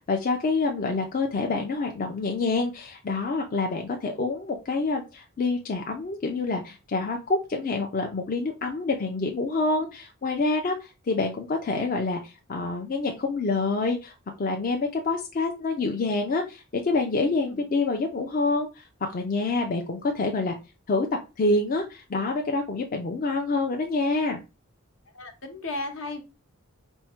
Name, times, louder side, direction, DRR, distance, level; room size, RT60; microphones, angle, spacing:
voice 1, 0.0-20.6 20.9-21.1 21.4-24.4, left 3 dB, 40° left, 3 dB, 0.5 m, -27 dB
voice 2, 25.1-26.2, left 2 dB, 70° left, 4 dB, 1.0 m, -34 dB
4.4 x 2.1 x 4.4 m, 0.28 s
head